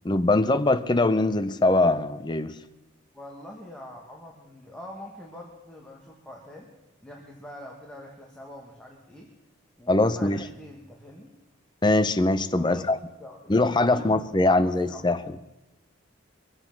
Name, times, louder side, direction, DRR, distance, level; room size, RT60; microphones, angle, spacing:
voice 1, 0.0-2.6 9.9-10.4 11.8-13.0 13.5-15.2, left 2 dB, 20° left, 12 dB, 0.5 m, -22 dB
voice 2, 3.1-6.7 7.0-9.3 9.8-11.3 12.5-14.1 14.5-15.1, left 1 dB, 5° left, -3 dB, 1.4 m, -44 dB
23.5 x 8.0 x 5.9 m, 0.97 s
head